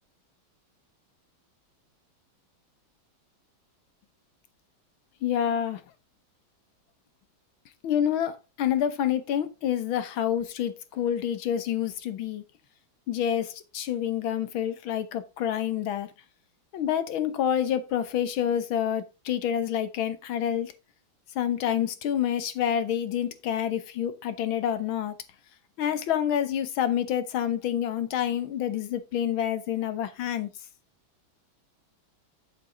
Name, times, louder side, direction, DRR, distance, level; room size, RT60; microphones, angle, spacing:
voice 1, 5.2-5.8 7.8-12.4 13.1-16.1 16.7-20.7 21.4-25.1 25.8-30.5, left 9 dB, 80° left, 1.9 m, -28 dB
8.2 x 7.5 x 3.9 m
omnidirectional pair, 2.2 m